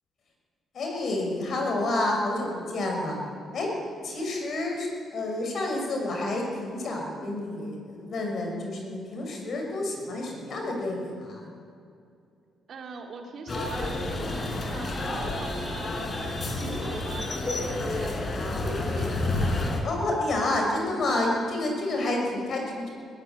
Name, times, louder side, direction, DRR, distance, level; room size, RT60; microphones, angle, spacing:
voice 1, 0.7-3.2 3.5-3.7 4.0-11.5 19.8-22.9, left 2 dB, 55° left, 1 dB, 6.1 m, -29 dB
voice 2, 12.7-16.2 16.6-19.6 22.0-22.4, right 4 dB, 60° right, 2 dB, 3.0 m, -42 dB
sound 1, 13.5-19.8, left 2 dB, 40° left, 4.2 m, -29 dB
20.0 x 15.5 x 9.0 m, 2.4 s
cardioid pair, 90°, 0 cm